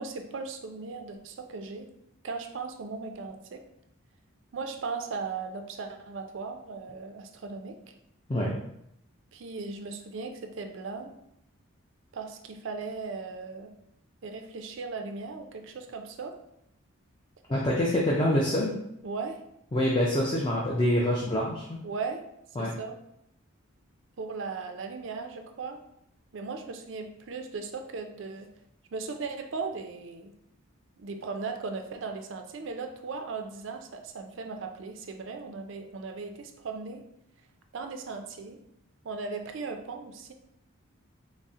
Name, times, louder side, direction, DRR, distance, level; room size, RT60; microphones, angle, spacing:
voice 1, 0.0-1.9 2.2-3.6 4.5-7.8 9.3-11.1 12.1-13.7 14.2-16.4 19.0-19.4 21.8-22.2 22.6-23.0 24.2-25.8 26.3-28.5 28.9-30.3 31.0-37.0 37.7-38.6 39.0-40.3, right 4 dB, 60° right, 6 dB, 0.4 m, -37 dB
voice 2, 17.5-18.7 19.7-21.8 22.6-22.7, left 1 dB, 25° left, -3 dB, 0.4 m, -26 dB
4.1 x 2.0 x 3.5 m, 0.78 s
head